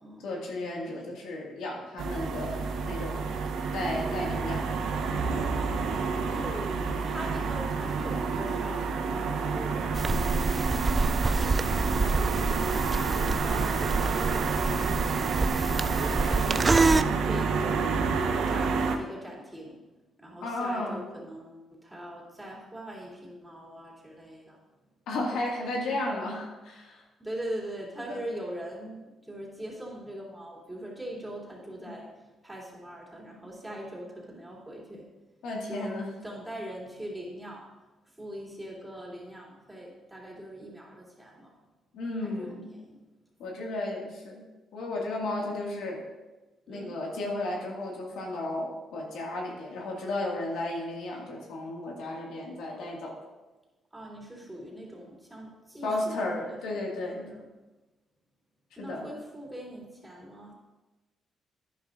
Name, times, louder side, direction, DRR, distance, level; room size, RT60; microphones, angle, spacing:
voice 1, 0.2-3.3 3.7-5.0 20.4-21.0 25.1-27.0 28.1-28.2 31.9-32.0 35.4-36.2 41.9-42.7 43.4-44.4 44.7-46.0 46.7-53.1 55.8-57.3 58.8-59.1, left 2 dB, 80° left, -1 dB, 2.0 m, -34 dB
sound 1, 2.0-19.0, right 5 dB, 75° right, 0.8 m, -29 dB
voice 2, 6.3-10.5 11.1-15.6 16.0-17.9 18.5-19.8 20.2-24.6 25.9-26.0 27.2-32.1 32.4-35.1 35.7-37.7 38.0-41.5 42.2-42.9 45.4-45.6 46.7-46.9 53.9-56.8 57.2-57.4 58.8-60.5, right 1 dB, 10° right, -3 dB, 2.9 m, -41 dB
sound 2, 9.9-17.0, right 3 dB, 25° right, 0.3 m, -27 dB
11.0 x 10.0 x 2.6 m, 1.1 s
cardioid pair, 90°, 0 cm